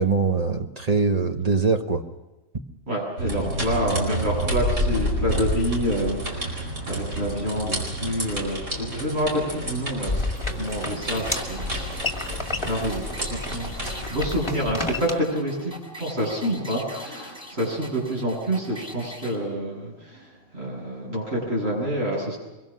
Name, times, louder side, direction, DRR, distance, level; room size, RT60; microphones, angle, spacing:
voice 1, 0.0-2.0, right 4 dB, 35° right, 5 dB, 1.3 m, -22 dB
voice 2, 2.9-10.2 10.6-11.9 12.7-13.7 14.1-15.7 16.0-20.2 20.5-22.4, equal, 55° right, -4 dB, 8.1 m, -27 dB
sound 1, 3.2-14.1, equal, 75° right, 5.2 m, -29 dB
sound 2, 10.0-15.1, left 2 dB, 20° left, 2.2 m, -31 dB
sound 3, 10.9-19.4, equal, 5° right, 5.7 m, -42 dB
24.5 x 22.5 x 6.3 m, 1.1 s
omnidirectional pair, 1.3 m